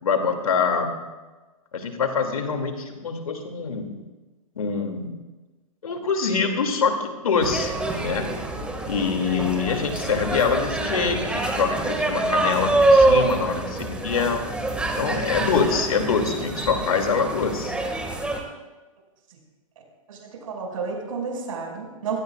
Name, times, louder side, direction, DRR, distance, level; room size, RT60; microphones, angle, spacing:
voice 1, 0.0-1.0 1.7-3.9 4.6-5.1 5.8-8.3 8.9-14.5 15.0-17.7, left 5 dB, 75° left, 4 dB, 2.6 m, -25 dB
sound 1, 7.4-18.4, right 2 dB, 5° right, 2.0 m, -25 dB
voice 2, 20.1-22.2, right 5 dB, 65° right, 0 dB, 6.0 m, -31 dB
25.0 x 17.5 x 2.5 m, 1.2 s
hypercardioid pair, 120°, 18 cm